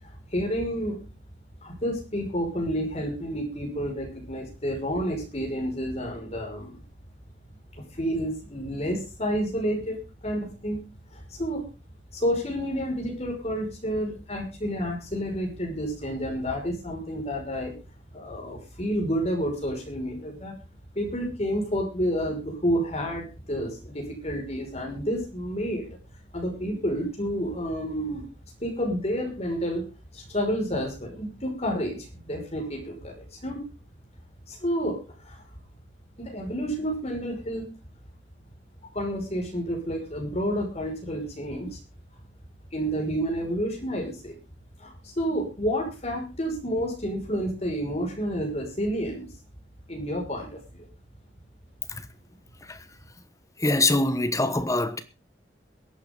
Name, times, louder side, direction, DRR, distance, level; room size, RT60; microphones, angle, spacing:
voice 1, 0.0-1.0 1.6-6.8 7.8-10.9 11.1-11.6 12.1-17.8 18.1-20.6 20.9-25.9 26.3-28.2 28.6-29.8 30.1-33.6 34.5-35.5 36.2-37.7 38.9-41.8 42.7-44.4 44.8-49.3 49.9-50.9, equal, 35° left, 5.8 m, -30 dB
voice 2, 53.6-55.0, left 2 dB, 20° left, 1.1 m, -24 dB
22.5 x 8.9 x 3.9 m
head